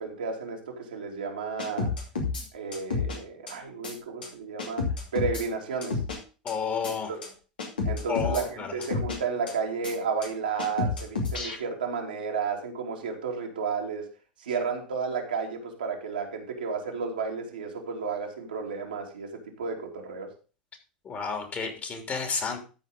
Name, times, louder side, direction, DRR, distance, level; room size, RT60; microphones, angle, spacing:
voice 1, 0.0-1.9 2.5-4.8 5.1-6.0 6.8-7.2 7.8-14.1 14.4-20.3, right 5 dB, 80° right, 0 dB, 2.7 m, -32 dB
sound 1, 1.6-2.4 2.7-3.2 3.5-3.6 3.8-3.9 4.2-4.3 4.6-5.4 5.8-6.2 6.5-6.6 6.8-6.9 7.2-7.3 7.6-8.4 8.8-9.2 9.5-9.6 9.8-9.9 10.2-10.3 10.6-11.6, left 4 dB, 80° left, 2.8 m, -30 dB
voice 2, 6.4-7.1 8.1-8.8 21.0-22.6, left 6 dB, 35° left, 5 dB, 3.2 m, -31 dB
13.0 x 4.9 x 5.2 m, 0.35 s
hypercardioid pair, 85°, 5 cm